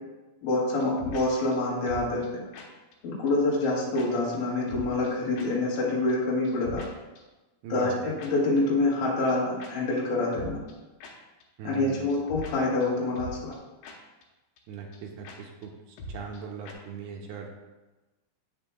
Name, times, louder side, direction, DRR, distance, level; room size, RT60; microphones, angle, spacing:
voice 1, 0.4-2.2 3.0-6.8 7.7-10.6 11.6-13.5, left 2 dB, 60° left, -6 dB, 2.9 m, -26 dB
sound 1, 0.8-1.2 1.5-1.6 1.9-2.3 2.5-2.7 2.9-3.0 3.3-3.4 3.6-3.7 4.0-4.1 4.3-4.4 4.7-5.1 5.4-5.5 5.8-5.9 6.1-6.2 6.4-6.9 7.2-7.3 8.2-8.3 8.6-8.7 8.9-9.0 9.3-9.4 9.6-9.7 10.0-10.1 10.3-10.7 11.0-11.1 11.4-11.5 11.7-11.8 12.1-12.5 12.8-12.9 13.2-13.6 13.8-14.0 14.2-14.3 14.6-14.7 14.9-15.0 15.2-15.4 15.6-15.7 16.0-16.4 16.7-16.8, left 1 dB, 90° left, 3.2 m, -41 dB
voice 2, 7.6-8.2 11.6-12.1 14.7-17.5, right 6 dB, 80° right, 1 dB, 2.3 m, -39 dB
8.7 x 6.8 x 2.3 m, 1.1 s
omnidirectional pair, 5.1 m